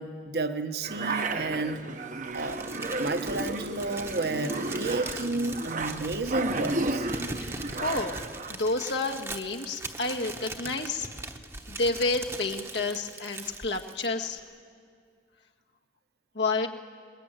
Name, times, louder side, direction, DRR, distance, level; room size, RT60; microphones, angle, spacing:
voice 1, 0.0-1.8 2.3-7.1, right 2 dB, 60° right, 8 dB, 1.1 m, -31 dB
sound 1, 0.8-8.5, right 2 dB, 45° right, 0.9 m, -33 dB
Crumpling crinkling, 2.3-14.4, right 2 dB, 15° right, 0.9 m, -41 dB
voice 2, 7.4-8.2 8.5-11.1 11.7-14.4 16.3-16.7, left 3 dB, 85° left, 2 dB, 1.8 m, -30 dB
21.5 x 21.0 x 9.1 m, 2.2 s
head